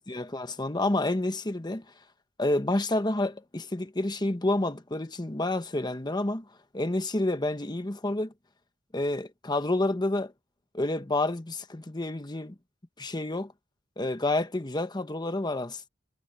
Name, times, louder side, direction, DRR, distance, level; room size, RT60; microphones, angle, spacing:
voice 1, 0.0-1.8 2.4-6.5 6.7-8.3 8.9-10.3 10.7-12.5 13.0-13.5 14.0-15.9, left 2 dB, 20° left, 1.1 m, -29 dB
head